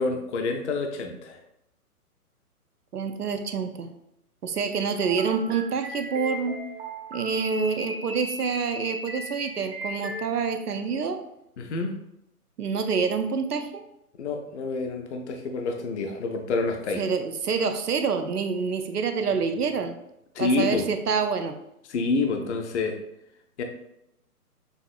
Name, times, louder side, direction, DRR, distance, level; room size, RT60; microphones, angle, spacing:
voice 1, 0.0-1.4 11.6-12.0 14.2-17.1 20.3-20.9 21.9-23.0 23.6-23.7, left 3 dB, 50° left, 4 dB, 0.6 m, -28 dB
voice 2, 2.9-3.9 4.4-6.6 7.1-11.2 12.6-13.7 17.0-19.9 20.4-21.6, right 5 dB, 90° right, 7 dB, 0.7 m, -27 dB
sound 1, 5.1-10.2, equal, 40° right, 0.9 m, -37 dB
6.5 x 2.6 x 2.4 m, 0.82 s
figure-of-eight pair, 135°, 45 cm